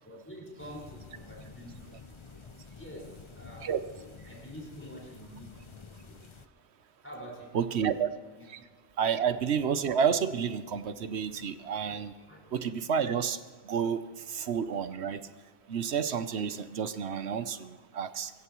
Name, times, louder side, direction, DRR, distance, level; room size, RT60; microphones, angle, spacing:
voice 1, 0.0-1.9 2.7-3.7 4.3-6.2 7.0-7.9 9.1-9.2 11.9-12.6, equal, 10° left, -3 dB, 5.2 m, -47 dB
sound 1, 0.6-6.5, left 5 dB, 35° left, 0.6 m, -50 dB
voice 2, 7.5-8.1 8.5-8.6 9.0-12.1 12.5-13.4 13.6-14.0 14.3-15.2 15.7-18.3, right 7 dB, 80° right, 12 dB, 1.1 m, -30 dB
23.5 x 15.5 x 3.1 m, 1.5 s
omnidirectional pair, 1.1 m